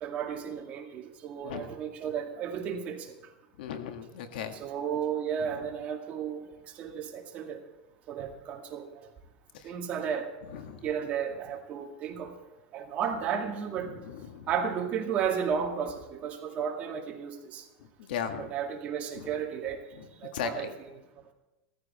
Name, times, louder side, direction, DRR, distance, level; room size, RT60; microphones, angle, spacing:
voice 1, 0.0-3.1 4.5-6.4 6.7-7.6 8.1-9.1 9.6-10.3 10.8-12.3 12.7-13.9 14.5-17.6 18.4-19.8 20.2-20.7, right 7 dB, 30° right, 2 dB, 2.1 m, -33 dB
voice 2, 3.6-4.5 10.5-10.8 14.0-14.5 18.1-18.5 20.0-20.1 20.3-20.7, left 8 dB, 85° left, 6 dB, 1.8 m, -36 dB
17.0 x 14.5 x 4.3 m, 1.0 s
supercardioid pair, 165°, 5 cm